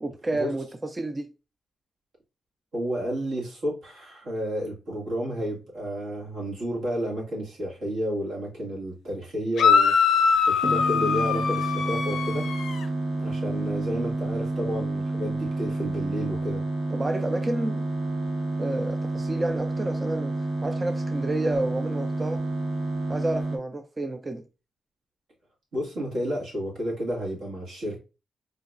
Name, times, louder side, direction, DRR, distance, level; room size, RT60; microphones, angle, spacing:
voice 1, 0.0-1.3 16.9-17.8 18.6-20.3 20.6-22.4 23.1-24.4, right 2 dB, 20° right, 0.3 m, -30 dB
voice 2, 2.7-10.0 10.5-12.5 13.2-16.6 25.7-28.0, equal, 80° right, 1.9 m, -31 dB
sound 1, 9.6-12.8, left 6 dB, 75° left, 0.5 m, -22 dB
sound 2, 10.6-23.6, right 2 dB, 50° right, 0.9 m, -29 dB
4.8 x 2.9 x 2.4 m
wide cardioid pair, 140°, 0 cm